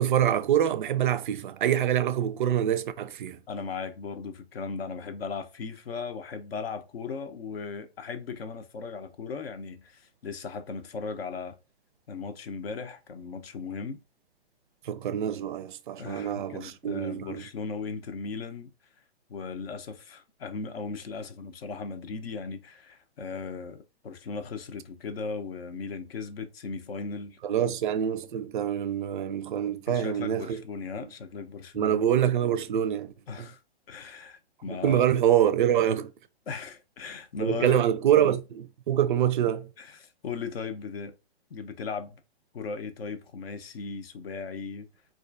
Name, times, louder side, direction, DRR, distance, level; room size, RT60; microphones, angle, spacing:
voice 1, 0.0-3.4 14.8-17.4 27.4-30.6 31.7-33.5 34.8-36.1 37.4-39.7, right 10 dB, 50° right, 0.4 m, -25 dB
voice 2, 3.5-11.6 12.1-14.0 16.0-18.7 19.3-27.8 29.9-32.0 33.3-33.6 33.9-35.0 36.5-37.8 39.8-41.1 41.5-42.2 42.5-44.9, left 5 dB, 65° left, 0.6 m, -37 dB
4.2 x 2.4 x 2.5 m
hypercardioid pair, 135°, 33 cm